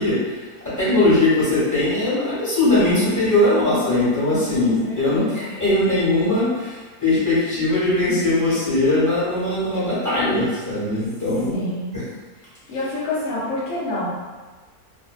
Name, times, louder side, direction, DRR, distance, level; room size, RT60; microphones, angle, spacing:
voice 1, 0.0-11.7 11.9-12.1, left 2 dB, 15° left, -12 dB, 1.0 m, -20 dB
voice 2, 4.6-5.5 11.5-12.0 12.7-14.1, left 2 dB, 70° left, -9 dB, 1.0 m, -28 dB
2.7 x 2.0 x 2.3 m, 1.3 s
omnidirectional pair, 1.7 m